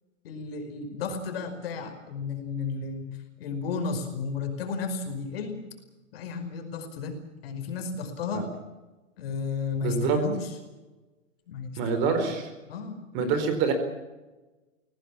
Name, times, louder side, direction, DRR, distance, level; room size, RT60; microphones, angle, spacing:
voice 1, 0.2-5.6 6.1-8.5 9.2-10.6 11.5-12.3 12.7-13.0 13.3-13.5, left 5 dB, 50° left, 6 dB, 5.2 m, -33 dB
voice 2, 9.8-10.2 11.8-12.5 13.1-13.7, right 5 dB, 30° right, 8 dB, 4.3 m, -25 dB
23.5 x 18.0 x 8.7 m, 1.1 s
hypercardioid pair, 155°, 39 cm